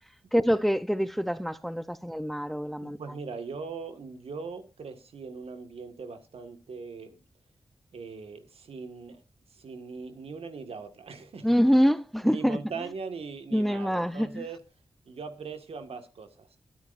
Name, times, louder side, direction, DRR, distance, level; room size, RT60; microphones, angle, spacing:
voice 1, 0.3-3.0 11.4-12.6 13.5-14.4, equal, ahead, 0.7 m, -25 dB
voice 2, 2.8-7.2 7.9-9.2 9.5-11.6 12.2-14.6 15.1-16.6, right 5 dB, 85° right, 1.8 m, -40 dB
22.5 x 9.5 x 2.6 m
cardioid pair, 70°, 10 cm